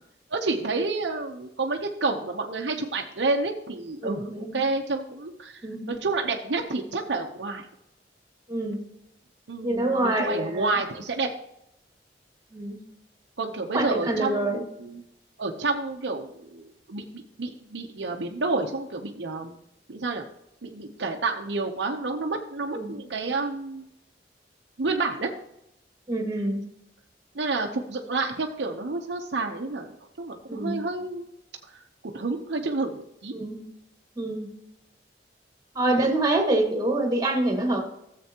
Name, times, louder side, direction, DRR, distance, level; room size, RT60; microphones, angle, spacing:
voice 1, 0.3-5.6 5.9-7.7 9.5-11.3 13.4-15.0 15.4-17.0 17.4-19.5 19.9-20.2 20.6-23.9 24.8-25.3 27.3-29.9 30.2-31.3 32.1-33.3 35.9-36.1, right 3 dB, 90° right, 2 dB, 0.8 m, -29 dB
voice 2, 4.0-4.5 5.6-5.9 8.5-8.8 9.6-10.7 12.5-12.8 13.7-14.6 22.7-23.0 26.1-26.6 30.5-30.8 33.3-33.6 34.2-34.5 35.8-37.9, right 1 dB, 20° right, 3 dB, 1.9 m, -26 dB
14.0 x 7.6 x 2.9 m, 0.81 s
head